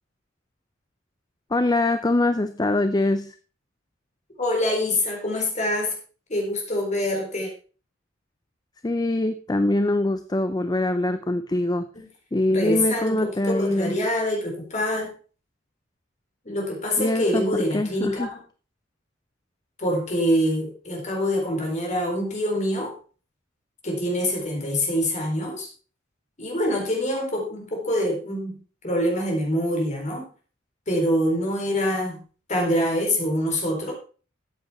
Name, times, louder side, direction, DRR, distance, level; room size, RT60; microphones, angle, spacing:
voice 1, 1.5-3.4 8.8-11.9 12.3-14.0 17.0-18.3, left 2 dB, 20° left, 10 dB, 0.5 m, -23 dB
voice 2, 4.4-5.9 6.3-7.5 12.0-12.1 12.5-15.1 16.5-18.4 19.8-22.9 23.8-25.7 26.4-28.6 28.8-30.3 30.9-32.2 32.5-33.9, left 1 dB, 35° left, 1 dB, 4.0 m, -25 dB
13.5 x 8.1 x 4.2 m, 0.38 s
head